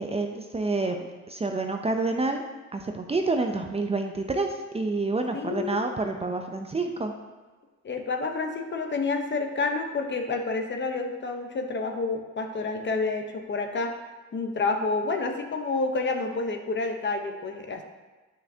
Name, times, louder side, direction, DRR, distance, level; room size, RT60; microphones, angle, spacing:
voice 1, 0.0-2.4 2.7-7.1, right 3 dB, 20° right, 4 dB, 0.6 m, -28 dB
voice 2, 5.3-5.8 7.8-13.9 14.3-17.8, left 3 dB, 40° left, 4 dB, 0.9 m, -29 dB
8.5 x 5.7 x 2.8 m, 1.3 s
cardioid pair, 90°, 30 cm